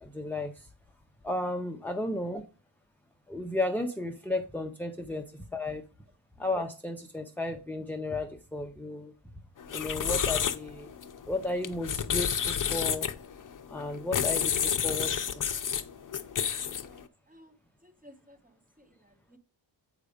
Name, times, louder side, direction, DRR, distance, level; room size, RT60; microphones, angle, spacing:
voice 1, 0.0-0.7 1.2-2.4 3.3-5.8 6.4-9.1 9.7-10.9 11.3-13.1 13.7-15.5, left 2 dB, 5° left, 0.6 m, -34 dB
sound 1, 9.6-17.0, left 8 dB, 45° left, 0.6 m, -30 dB
voice 2, 16.8-17.5 17.8-19.4, equal, 15° right, 1.1 m, -57 dB
8.1 x 5.0 x 5.0 m
wide cardioid pair, 165°, 46 cm